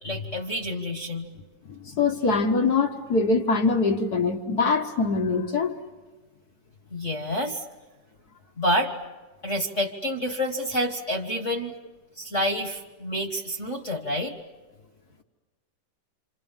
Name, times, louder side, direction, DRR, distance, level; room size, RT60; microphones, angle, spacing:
voice 1, 0.0-1.3 6.9-7.6 8.6-8.9 9.4-11.7 12.2-14.3, equal, 35° left, 1.3 m, -28 dB
voice 2, 1.8-5.8, left 4 dB, 50° left, 1.1 m, -23 dB
28.0 x 28.0 x 7.4 m
omnidirectional pair, 3.8 m